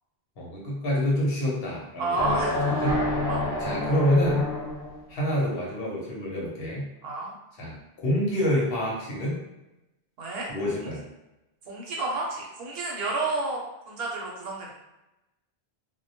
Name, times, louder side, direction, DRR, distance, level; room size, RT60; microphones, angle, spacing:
voice 1, 0.4-3.0 3.6-4.5 5.1-6.8 7.6-9.4 10.5-11.0, equal, 70° left, -4 dB, 0.9 m, -27 dB
voice 2, 2.0-2.6 3.3-3.5 7.0-7.3 10.2-10.9 11.7-14.7, right 2 dB, 70° right, -2 dB, 0.8 m, -30 dB
sound 1, 2.1-5.0, left 1 dB, 20° left, 0.6 m, -27 dB
2.2 x 2.1 x 2.7 m, 0.97 s
omnidirectional pair, 1.1 m